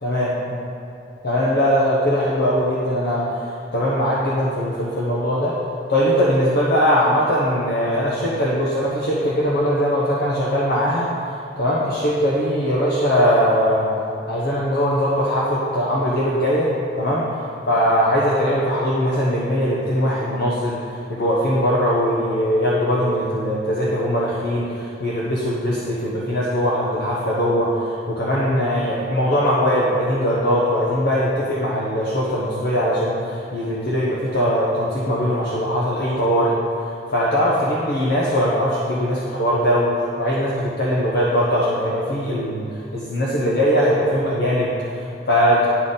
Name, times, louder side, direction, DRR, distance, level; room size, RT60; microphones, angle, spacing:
voice 1, 1.2-5.5 5.9-13.9 14.3-16.7 17.0-17.3 17.6-20.8 21.1-36.5 37.1-45.7, equal, 55° left, -6 dB, 0.9 m, -20 dB
11.0 x 4.0 x 3.8 m, 2.8 s
head